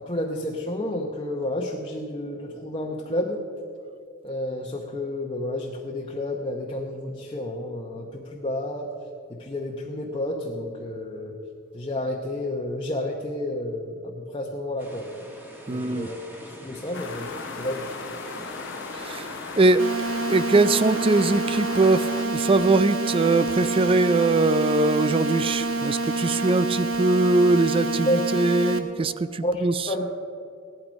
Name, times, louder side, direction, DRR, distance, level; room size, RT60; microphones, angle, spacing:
voice 1, 0.0-3.4 4.2-8.9 9.3-11.3 11.7-15.1 15.7-16.2 16.5-17.8 18.4-18.5 28.1-28.2 29.4-30.1, left 1 dB, 25° left, -2 dB, 1.0 m, -30 dB
sound 1, 14.8-26.6, equal, 10° right, 1.6 m, -43 dB
voice 2, 15.7-16.1 18.9-19.3 19.6-19.9 20.3-29.9, right 2 dB, 25° right, 15 dB, 0.4 m, -21 dB
sound 2, 16.9-22.3, left 5 dB, 60° left, 0.9 m, -37 dB
sound 3, 19.8-28.8, right 2 dB, 65° right, 1.0 m, -27 dB
17.0 x 12.0 x 5.2 m, 2.4 s
head